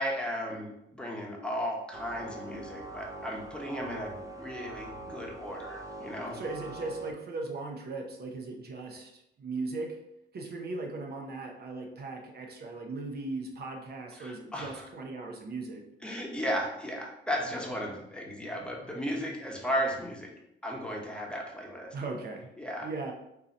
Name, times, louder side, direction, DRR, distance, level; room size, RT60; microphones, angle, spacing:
voice 1, 0.0-6.4 14.2-14.9 16.0-20.3 20.6-21.9 22.6-22.9, equal, 5° left, -2 dB, 1.0 m, -35 dB
sound 1, 1.9-7.1, right 2 dB, 15° right, 0.6 m, -43 dB
voice 2, 6.3-10.0 10.3-15.8 21.9-22.5 22.8-23.1, right 3 dB, 55° right, 1 dB, 0.7 m, -38 dB
3.8 x 2.8 x 4.1 m, 0.84 s
cardioid pair, 90°, 20 cm